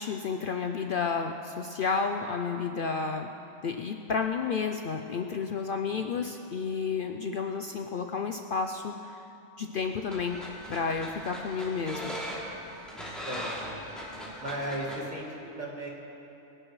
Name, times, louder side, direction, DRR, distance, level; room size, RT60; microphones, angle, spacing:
voice 1, 0.0-3.3 3.6-9.2 9.6-10.4 10.7-12.2, left 5 dB, 55° left, 4 dB, 0.7 m, -31 dB
voice 2, 5.9-6.2 13.2-13.7 14.4-15.2 15.6-15.9, right 1 dB, 40° right, -3 dB, 2.2 m, -36 dB
sound 1, 9.8-15.0, equal, ahead, 2.8 m, -39 dB
25.5 x 11.0 x 3.2 m, 3.0 s
omnidirectional pair, 1.2 m